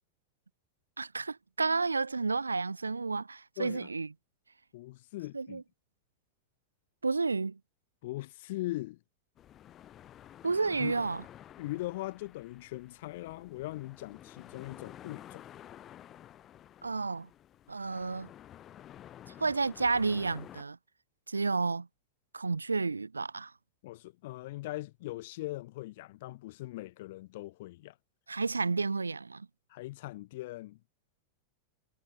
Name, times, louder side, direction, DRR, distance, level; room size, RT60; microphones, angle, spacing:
voice 1, 1.0-4.1 5.3-5.6 7.0-7.6 10.4-11.2 16.8-17.3 17.7-18.3 19.4-20.8 21.3-21.9 22.3-23.5 28.3-29.5, right 4 dB, 80° right, 0.5 m, -31 dB
voice 2, 3.6-3.9 4.7-5.6 8.0-9.0 10.8-10.9 11.6-15.4 23.8-28.0 29.7-30.8, left 18 dB, 50° left, 3.5 m, -40 dB
sound 1, 9.4-20.6, left 11 dB, 30° left, 2.2 m, -52 dB
figure-of-eight pair, 90°, 0 cm